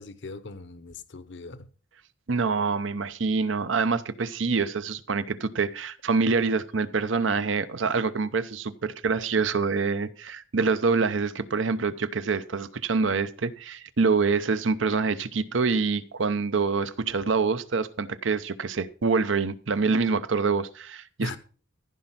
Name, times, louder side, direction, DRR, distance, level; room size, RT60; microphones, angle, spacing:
voice 1, 0.0-1.7 21.2-21.4, left 2 dB, 65° left, 0.9 m, -38 dB
voice 2, 2.3-21.4, right 4 dB, 75° right, 0.7 m, -26 dB
14.5 x 5.3 x 5.7 m
head